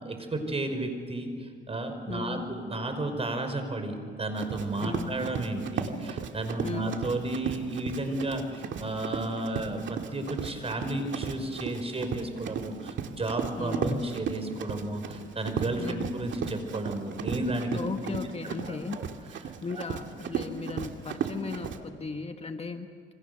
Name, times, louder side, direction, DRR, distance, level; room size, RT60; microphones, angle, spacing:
voice 1, 0.0-17.8 18.6-19.1 19.7-19.8, right 2 dB, 30° right, 7 dB, 5.1 m, -33 dB
voice 2, 2.1-2.5 4.8-5.2 6.6-6.9 13.6-14.1 15.8-16.1 17.7-19.0 19.6-22.9, left 4 dB, 30° left, 6 dB, 1.5 m, -36 dB
Run, 4.3-21.8, right 7 dB, 70° right, 2.1 m, -35 dB
28.0 x 25.0 x 6.8 m, 2.2 s
cardioid pair, 90°, 20 cm